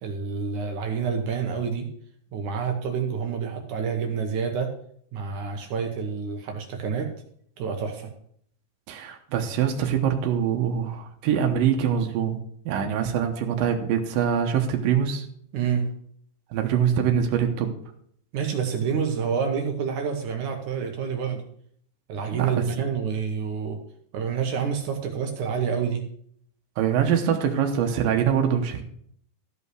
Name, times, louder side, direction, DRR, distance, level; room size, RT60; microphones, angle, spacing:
voice 1, 0.0-1.9 2.3-4.7 5.1-7.1 7.6-8.1 15.5-15.9 18.3-21.4 22.1-23.8 24.1-26.0, right 6 dB, 70° right, 4 dB, 2.5 m, -28 dB
voice 2, 8.9-12.4 12.7-15.3 16.5-17.7 22.3-22.5 26.8-28.8, right 8 dB, 90° right, 4 dB, 2.8 m, -24 dB
14.0 x 5.5 x 6.3 m, 0.65 s
omnidirectional pair, 3.9 m